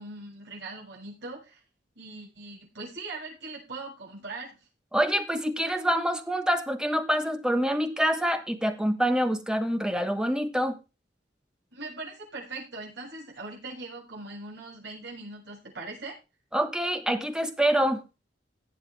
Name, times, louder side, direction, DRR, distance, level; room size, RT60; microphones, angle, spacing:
voice 1, 0.0-1.6 2.0-4.5 11.7-16.2, right 3 dB, 80° right, -4 dB, 7.1 m, -40 dB
voice 2, 4.9-10.7 16.5-18.0, equal, 5° right, 8 dB, 1.3 m, -26 dB
18.0 x 7.3 x 3.4 m, 0.29 s
head